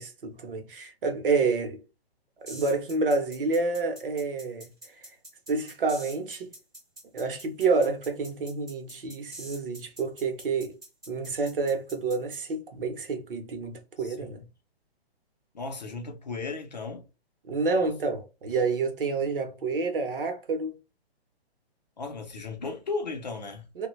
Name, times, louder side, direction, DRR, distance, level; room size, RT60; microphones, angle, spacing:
voice 1, 0.0-1.8 2.5-5.0 5.5-6.5 7.1-10.8 11.1-14.4 17.5-20.7 23.8-23.9, right 4 dB, 55° right, 0.8 m, -28 dB
sound 1, 2.5-12.4, right 1 dB, 5° right, 0.6 m, -45 dB
voice 2, 14.0-14.4 15.5-17.1 17.8-17.9 22.0-23.7, left 4 dB, 40° left, 0.5 m, -35 dB
3.1 x 2.1 x 3.0 m
hypercardioid pair, 180°, 32 cm